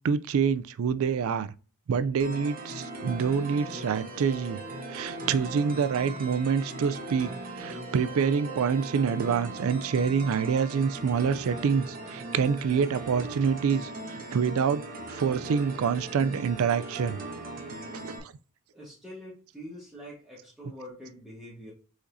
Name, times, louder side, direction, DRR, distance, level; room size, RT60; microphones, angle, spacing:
voice 1, 0.0-1.5 1.9-4.6 4.9-14.8 15.1-17.2 17.9-18.2, right 6 dB, 65° right, 0.3 m, -26 dB
sound 1, 2.2-18.2, right 2 dB, 40° right, 1.0 m, -39 dB
voice 2, 18.7-21.7, equal, ahead, 1.3 m, -45 dB
5.0 x 4.0 x 2.6 m
head